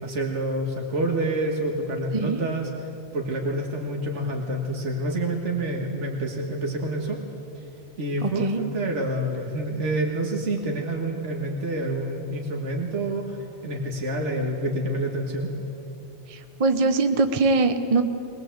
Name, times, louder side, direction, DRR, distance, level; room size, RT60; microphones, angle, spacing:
voice 1, 0.0-2.7 3.1-7.2 8.0-15.5, right 1 dB, 75° right, 0 dB, 2.1 m, -28 dB
voice 2, 8.2-8.6 16.3-18.0, right 3 dB, 35° right, 7 dB, 0.8 m, -22 dB
22.0 x 20.0 x 7.9 m, 2.8 s
omnidirectional pair, 1.2 m